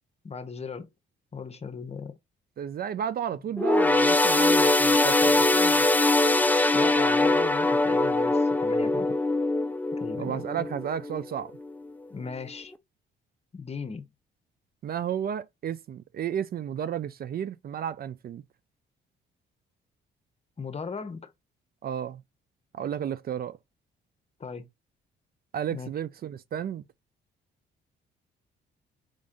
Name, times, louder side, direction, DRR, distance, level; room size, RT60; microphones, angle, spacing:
voice 1, 0.2-0.9 1.3-2.2 6.7-9.2 9.9-10.7 12.1-12.7 13.5-14.1 20.6-21.3 24.4-24.7 25.7-25.9, left 5 dB, 30° left, 0.8 m, -37 dB
voice 2, 2.6-5.9 10.2-11.5 14.8-18.4 21.8-22.2 22.7-23.6 25.5-26.9, right 9 dB, 50° right, 0.5 m, -33 dB
sound 1, 3.6-11.3 11.7-11.9 12.7-12.8, left 2 dB, 10° left, 0.5 m, -22 dB
5.1 x 2.6 x 3.6 m
cardioid pair, 90°, 20 cm